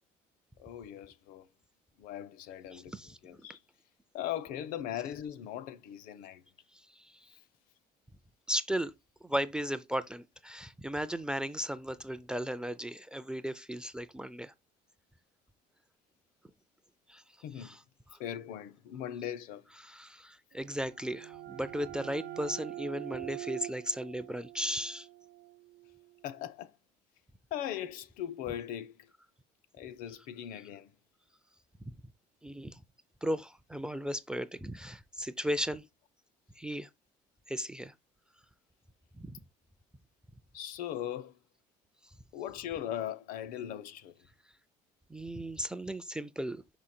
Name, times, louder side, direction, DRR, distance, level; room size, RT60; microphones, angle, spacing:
voice 1, 0.6-1.5 2.0-2.9 3.2-3.6 4.1-6.4 17.4-17.8 18.2-19.6 26.2-26.7 27.5-28.9 29.8-30.9 40.5-41.3 42.3-44.1, left 11 dB, 70° left, 0.7 m, -39 dB
voice 2, 2.7-3.2 6.7-7.3 8.5-8.9 9.2-14.5 17.1-17.2 17.6-17.8 18.1-18.2 19.8-25.1 32.4-32.8 33.2-35.8 36.6-36.9 37.5-37.9 39.2-39.4 45.1-46.6, equal, 5° right, 0.3 m, -36 dB
sound 1, 20.6-26.1, right 16 dB, 75° right, 0.7 m, -44 dB
5.6 x 5.0 x 4.2 m
cardioid pair, 155°, 15 cm